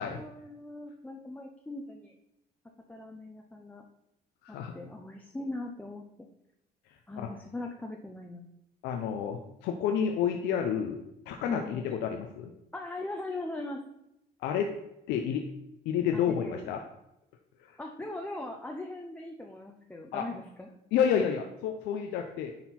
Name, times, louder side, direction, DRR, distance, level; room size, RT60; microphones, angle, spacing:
voice 1, 0.0-2.1 2.9-3.8 4.5-6.0 7.1-8.5 11.4-11.8 12.7-13.8 16.1-16.7 17.8-20.7, left 2 dB, 10° left, 1 dB, 0.8 m, -40 dB
voice 2, 8.8-11.0 11.3-12.5 14.4-14.7 15.1-15.4 15.9-16.8 17.6-17.7 20.1-20.3 20.9-22.5, left 8 dB, 90° left, 4 dB, 0.7 m, -30 dB
9.6 x 4.3 x 4.2 m, 0.84 s
cardioid pair, 110°, 17 cm